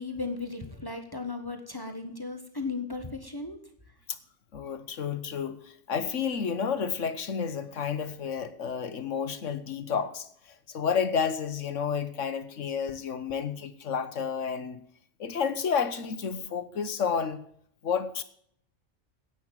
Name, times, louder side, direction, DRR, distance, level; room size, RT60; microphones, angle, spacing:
voice 1, 0.0-3.6, left 3 dB, 20° left, 1.5 m, -36 dB
voice 2, 4.5-14.8 15.2-17.4 17.8-18.2, left 6 dB, 80° left, 1.5 m, -31 dB
11.0 x 9.0 x 8.9 m
omnidirectional pair, 1.3 m